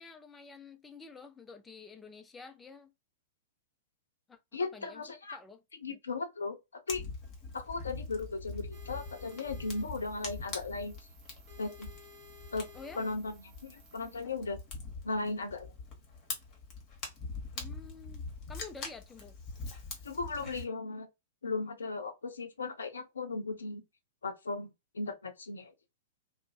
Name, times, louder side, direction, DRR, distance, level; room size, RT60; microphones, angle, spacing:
voice 1, 0.0-2.9 4.3-5.1 5.3-6.0 12.7-13.0 17.5-19.3, left 4 dB, 10° left, 0.4 m, -50 dB
voice 2, 4.5-5.4 5.8-6.6 6.9-7.0 7.5-10.9 11.6-11.9 12.5-12.6 12.9-14.6 15.0-15.7 20.0-21.1 21.4-23.8 24.2-25.7, left 3 dB, 70° left, 0.5 m, -37 dB
Fire, 6.9-20.6, left 3 dB, 30° left, 1.0 m, -44 dB
sound 1, 8.7-14.2, left 2 dB, 30° right, 0.8 m, -56 dB
2.5 x 2.1 x 2.5 m
figure-of-eight pair, 100°, 0 cm